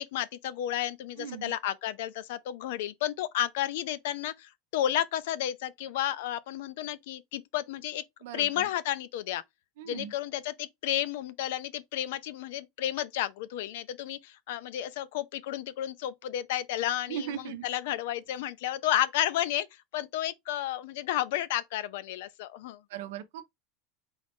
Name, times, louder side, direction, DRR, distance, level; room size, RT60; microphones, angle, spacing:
voice 1, 0.0-8.0 8.3-9.4 9.9-19.7 19.9-22.8, left 12 dB, 75° left, 0.4 m, -32 dB
voice 2, 1.2-1.6 8.2-8.7 9.8-10.1 17.1-17.6 22.9-23.5, right 10 dB, 80° right, 0.6 m, -38 dB
3.9 x 2.6 x 3.5 m
supercardioid pair, 155°, 0 cm